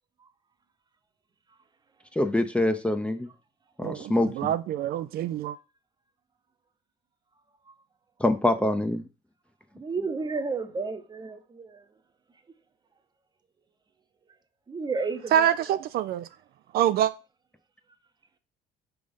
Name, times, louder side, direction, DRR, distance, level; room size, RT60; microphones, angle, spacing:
voice 1, 2.2-3.3 3.8-4.5 8.2-9.0, left 1 dB, 5° left, 0.6 m, -25 dB
voice 2, 3.8-5.6 15.3-16.3 16.7-17.1, right 10 dB, 65° right, 0.4 m, -25 dB
voice 3, 9.7-11.9 14.7-15.5, right 4 dB, 25° right, 0.8 m, -32 dB
5.1 x 3.5 x 5.3 m
cardioid pair, 110°, 17 cm